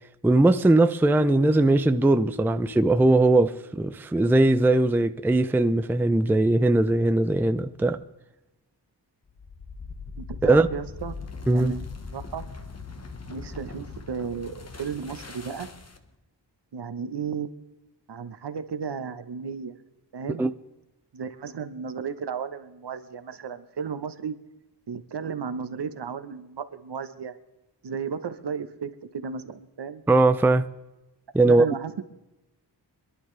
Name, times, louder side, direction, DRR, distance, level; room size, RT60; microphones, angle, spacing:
voice 1, 0.2-8.0 10.4-10.7 11.5-11.8 20.4-20.5 30.1-30.7 31.3-31.7, right 2 dB, 5° right, 0.4 m, -20 dB
sound 1, 1.0-4.2, left 9 dB, 55° left, 6.8 m, -40 dB
sound 2, 9.3-16.1, left 4 dB, 35° left, 1.3 m, -40 dB
voice 2, 10.2-11.1 11.5-11.9 12.1-12.4 13.3-15.7 16.7-17.5 18.1-19.8 20.1-20.5 21.1-24.3 24.9-27.3 27.8-30.0 31.4-32.0, right 6 dB, 65° right, 1.1 m, -34 dB
26.0 x 11.0 x 3.3 m
wide cardioid pair, 115°, 43 cm